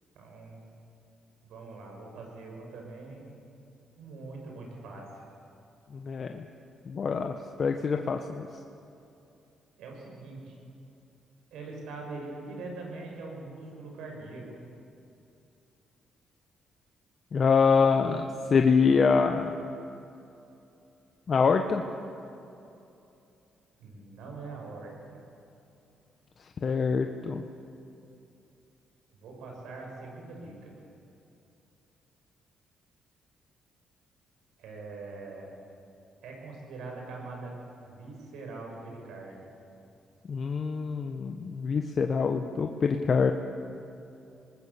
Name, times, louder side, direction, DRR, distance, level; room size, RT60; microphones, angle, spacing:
voice 1, 0.1-0.6 1.4-3.2 4.0-5.0 9.8-10.6 11.5-14.7 23.8-25.2 29.1-30.8 34.6-35.5 36.2-37.5 37.9-39.4, right 3 dB, 85° right, 0 dB, 6.5 m, -42 dB
voice 2, 5.9-6.4 6.9-7.3 7.6-8.5 17.3-19.6 21.3-21.8 26.6-27.4 40.3-43.3, left 5 dB, 45° left, 5 dB, 1.2 m, -25 dB
26.5 x 20.0 x 7.2 m, 2.8 s
cardioid pair, 90°, 0 cm